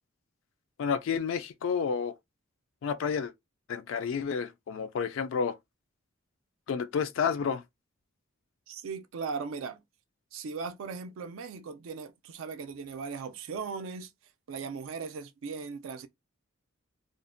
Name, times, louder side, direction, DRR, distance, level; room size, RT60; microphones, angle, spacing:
voice 1, 0.8-2.1 2.8-3.3 3.7-5.6 6.7-7.6, left 6 dB, 65° left, 0.3 m, -30 dB
voice 2, 8.7-9.8 10.3-14.1 14.5-16.1, right 5 dB, 70° right, 0.4 m, -38 dB
2.5 x 2.0 x 2.5 m
head